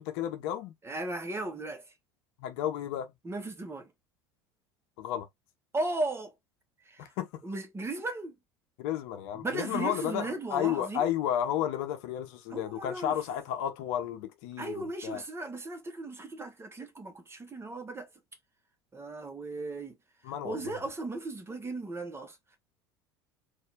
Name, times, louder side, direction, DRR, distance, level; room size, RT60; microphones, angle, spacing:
voice 1, 0.0-0.7 2.4-3.1 5.0-5.3 7.0-7.4 8.8-15.2 20.2-20.8, left 10 dB, 55° left, 0.9 m, -32 dB
voice 2, 0.8-1.9 3.2-3.9 5.7-6.3 6.9-7.1 7.4-8.4 9.3-11.1 12.5-13.2 14.6-18.1 18.9-20.0 20.3-22.4, right 2 dB, 15° right, 1.4 m, -36 dB
4.3 x 2.7 x 3.7 m
figure-of-eight pair, 70°, 14 cm